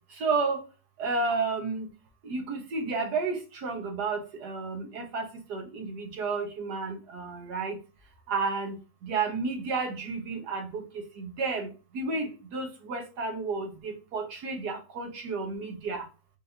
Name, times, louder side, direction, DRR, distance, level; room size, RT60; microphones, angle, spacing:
voice 1, 0.2-0.6 1.0-1.9 2.2-7.8 8.3-8.8 9.0-10.8 11.2-11.7 11.9-16.0, right 4 dB, 90° right, 1.8 m, -31 dB
4.8 x 4.1 x 2.7 m
omnidirectional pair, 1.7 m